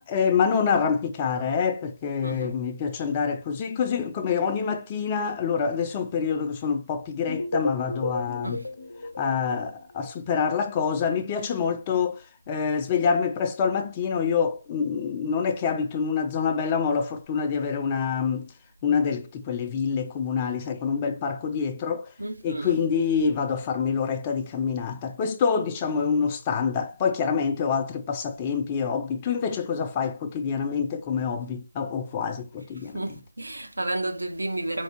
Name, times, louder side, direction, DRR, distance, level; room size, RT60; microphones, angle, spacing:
voice 1, 0.0-8.6 9.2-18.5 18.8-22.1 22.4-33.2, left 6 dB, 20° left, 0.5 m, -26 dB
sound 1, 7.3-10.2, left 2 dB, 65° left, 0.7 m, -33 dB
voice 2, 22.2-22.7 32.9-34.8, right 2 dB, 75° right, 1.0 m, -31 dB
4.4 x 2.3 x 2.9 m
figure-of-eight pair, 160°, 0 cm